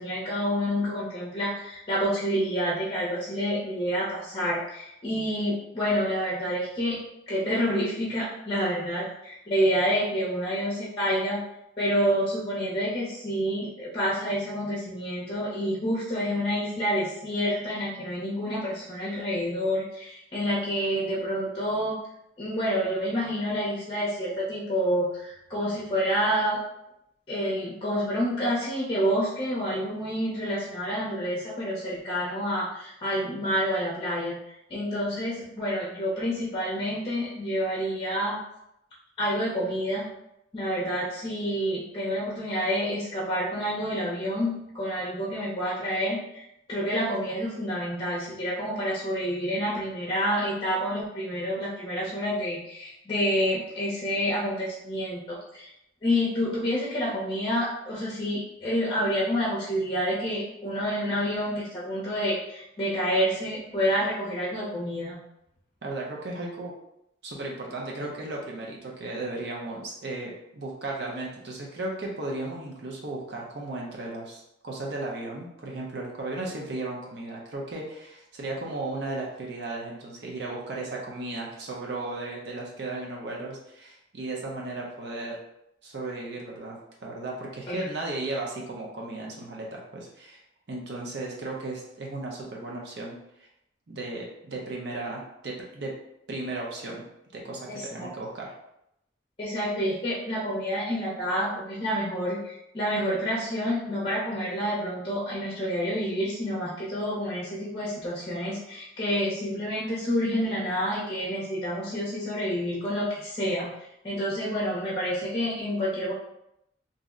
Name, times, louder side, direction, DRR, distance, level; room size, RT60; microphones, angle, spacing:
voice 1, 0.0-7.0 7.3-11.4 11.8-22.0 22.4-26.6 27.3-38.4 39.2-40.1 40.5-55.7 56.0-65.2 87.7-87.8 97.7-98.1 99.4-113.7 114.0-116.1, equal, 30° left, -7 dB, 0.7 m, -28 dB
voice 2, 65.8-66.7 67.2-85.4 85.8-90.4 90.7-93.5 93.9-95.9 96.3-97.0 97.3-98.5, right 2 dB, 65° right, -2 dB, 0.6 m, -35 dB
2.7 x 2.1 x 3.6 m, 0.81 s
head